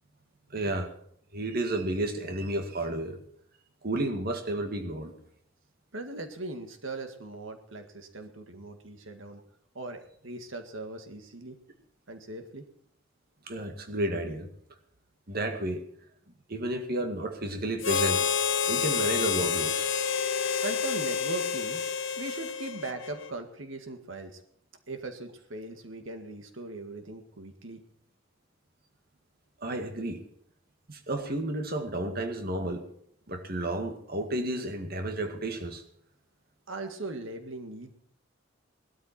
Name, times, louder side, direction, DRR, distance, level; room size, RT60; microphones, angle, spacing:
voice 1, 0.5-0.9 1.3-3.2 3.8-5.1 13.5-14.5 15.3-15.8 16.5-18.3 18.7-19.9 29.6-30.2 30.9-32.9 33.3-35.8, right 1 dB, 50° right, 5 dB, 2.1 m, -32 dB
voice 2, 5.9-9.4 9.7-11.6 12.1-12.7 20.6-21.8 22.2-24.4 24.9-27.8 36.7-37.9, right 2 dB, 80° right, 6 dB, 1.9 m, -39 dB
Harmonica, 17.8-23.3, left 6 dB, 70° left, 1.0 m, -29 dB
19.5 x 13.0 x 4.4 m, 0.65 s
head